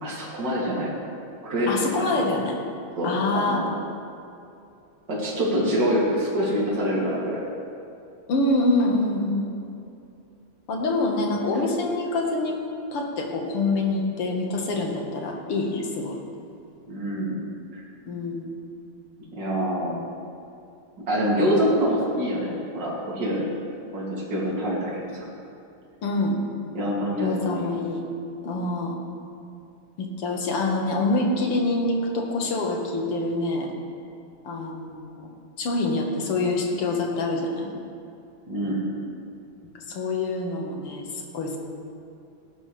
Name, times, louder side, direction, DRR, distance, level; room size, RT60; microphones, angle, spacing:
voice 1, 0.0-0.9 1.4-2.1 3.0-3.7 5.1-7.4 11.5-11.6 16.9-17.4 17.7-17.8 19.3-20.0 21.1-23.5 23.9-25.3 26.7-27.7 38.5-38.8, equal, 50° right, -6 dB, 3.5 m, -25 dB
voice 2, 1.7-2.6 3.0-3.6 8.3-9.7 10.7-12.6 12.9-16.2 18.1-18.5 26.0-26.4 27.2-28.0 28.4-29.0 30.0-33.7 34.4-35.3 35.6-37.7 39.7-41.1 41.3-41.6, left 2 dB, 85° left, 1 dB, 2.6 m, -26 dB
18.0 x 11.5 x 3.4 m, 2.6 s
omnidirectional pair, 2.4 m